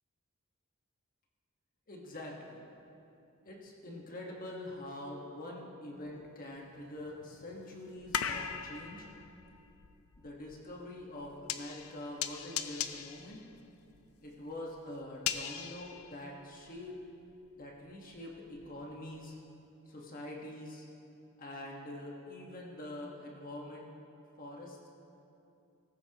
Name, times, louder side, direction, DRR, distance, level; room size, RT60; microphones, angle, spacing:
voice 1, 1.9-2.6 3.4-9.1 10.2-13.4 14.2-17.0 17.5-19.4 19.9-20.8 21.4-23.9 24.4-24.9, left 1 dB, 40° left, -1 dB, 1.5 m, -45 dB
sound 1, 6.1-6.2 6.8-16.9 17.2-18.9 19.2-19.3, left 8 dB, 85° left, 0.6 m, -40 dB
17.5 x 15.0 x 3.0 m, 2.8 s
head